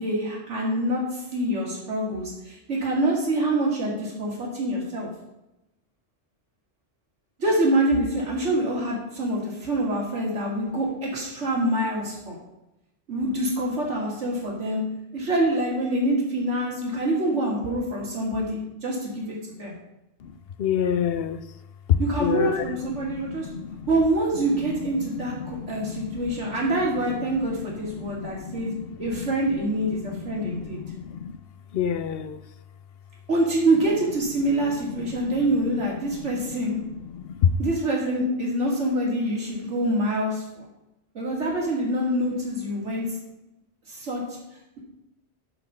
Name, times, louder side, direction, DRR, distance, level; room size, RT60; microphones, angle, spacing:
voice 1, 0.0-5.1 7.4-12.4 13.1-14.8 15.1-19.7 22.0-23.5 23.9-28.7 29.0-30.8 33.3-36.8 37.6-40.7 41.1-43.2 43.9-44.2, right 1 dB, 90° right, -3 dB, 2.6 m, -26 dB
voice 2, 20.6-21.4 21.9-23.8 25.0-26.2 26.5-26.6 27.6-29.3 30.0-31.4 31.7-32.4 35.0-35.3 36.2-36.3 37.1-37.5, left 8 dB, 65° left, 13 dB, 0.8 m, -29 dB
11.0 x 4.3 x 5.5 m, 0.90 s
omnidirectional pair, 1.2 m